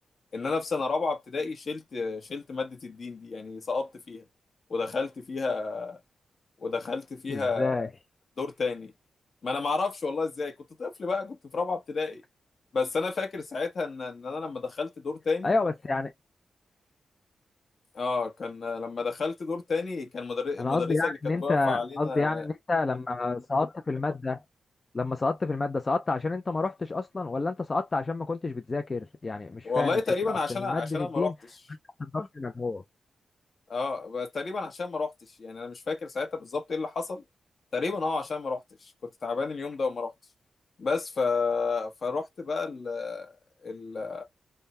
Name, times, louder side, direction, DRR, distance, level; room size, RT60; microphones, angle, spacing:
voice 1, 0.3-4.2 4.7-6.0 6.6-7.9 8.4-8.9 9.4-12.2 12.7-15.5 17.9-22.4 29.6-31.3 33.7-35.1 35.4-37.2 37.7-38.9 39.2-40.1 40.8-43.3 43.6-44.2, left 4 dB, 50° left, 1.1 m, -31 dB
voice 2, 7.3-7.9 15.4-16.1 20.6-24.4 24.9-30.0 30.5-31.3 32.0-32.8, left 3 dB, 30° left, 0.4 m, -29 dB
3.6 x 2.1 x 2.5 m
wide cardioid pair, 140°, 0 cm